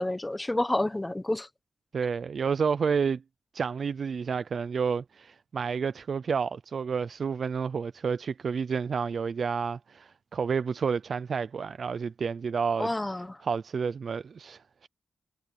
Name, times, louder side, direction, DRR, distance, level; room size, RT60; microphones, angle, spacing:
voice 1, 0.0-1.5 12.8-13.4, left 1 dB, 15° left, 1.0 m, -29 dB
voice 2, 1.9-3.2 3.5-12.9 13.4-14.9, right 6 dB, 60° right, 0.5 m, -30 dB
cardioid pair, 90°, 0 cm